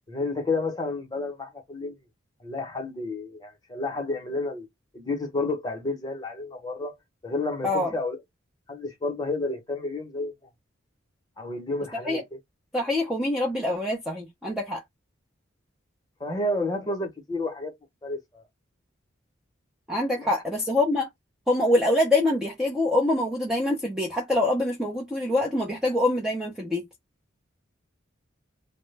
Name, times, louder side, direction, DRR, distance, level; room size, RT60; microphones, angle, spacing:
voice 1, 0.1-1.9 2.4-4.7 4.9-6.9 7.2-8.2 8.7-10.3 11.4-12.4 16.2-17.7 18.0-18.4 20.1-20.3, left 2 dB, 20° left, 0.8 m, -30 dB
voice 2, 12.7-14.8 19.9-21.1 21.5-26.9, left 1 dB, 5° right, 0.4 m, -25 dB
2.1 x 2.1 x 3.1 m
head